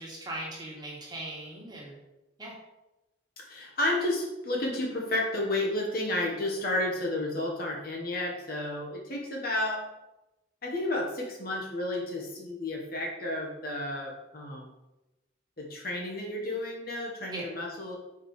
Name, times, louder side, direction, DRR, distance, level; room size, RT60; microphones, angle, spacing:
voice 1, 0.0-2.0 2.4-2.6 17.3-17.5, right 1 dB, 20° right, -3 dB, 1.7 m, -39 dB
voice 2, 3.4-9.8 10.6-14.7 15.6-18.0, left 1 dB, 50° left, -1 dB, 1.3 m, -31 dB
4.9 x 4.8 x 4.9 m, 0.97 s
head